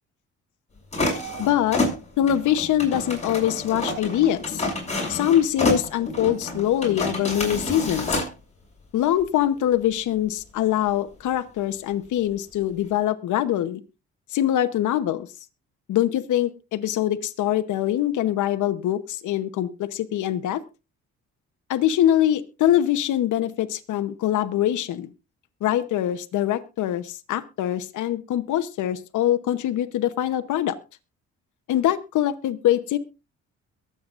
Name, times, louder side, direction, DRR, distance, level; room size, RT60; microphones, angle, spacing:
sound 1, 0.9-8.3, left 2 dB, 20° left, 6.1 m, -28 dB
voice 1, 1.4-1.8 2.2-4.6 5.1-8.2 8.9-13.8 14.3-15.3 15.9-20.6 21.7-25.1 25.6-30.8 31.7-33.0, left 12 dB, 75° left, 9 dB, 1.0 m, -23 dB
22.5 x 7.8 x 2.5 m, 0.29 s
cardioid pair, 90°, 30 cm